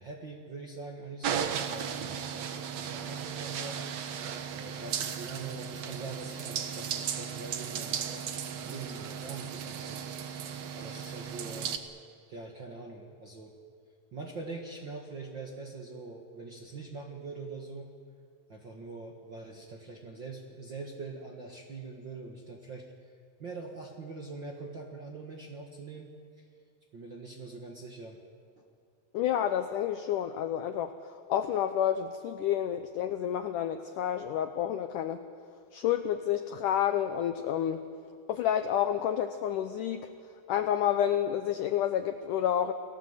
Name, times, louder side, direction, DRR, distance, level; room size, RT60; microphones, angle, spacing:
voice 1, 0.0-3.8 4.5-8.2 8.6-10.0 10.7-11.8 12.3-13.5 14.1-17.9 18.5-22.8 23.4-26.4 26.9-28.2, right 3 dB, 50° right, 1 dB, 1.5 m, -43 dB
sound 1, 1.2-11.8, right 8 dB, 65° right, 1.7 m, -36 dB
voice 2, 29.1-35.2 35.7-37.8 38.3-40.1 40.5-42.7, left 10 dB, 85° left, 9 dB, 1.8 m, -29 dB
29.5 x 19.0 x 8.1 m, 2.3 s
omnidirectional pair, 4.7 m